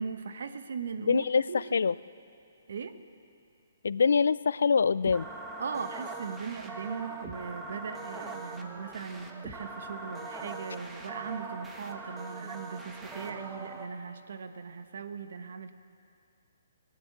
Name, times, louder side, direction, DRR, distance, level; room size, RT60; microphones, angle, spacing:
voice 1, 0.0-1.6 2.7-3.0 5.6-15.7, right 5 dB, 65° right, 9 dB, 1.0 m, -39 dB
voice 2, 1.1-1.9 3.8-5.3, left 5 dB, 75° left, 18 dB, 0.3 m, -25 dB
sound 1, 5.0-13.8, right 3 dB, 10° right, 1.1 m, -42 dB
17.0 x 10.0 x 8.3 m, 2.5 s
hypercardioid pair, 150°, 0 cm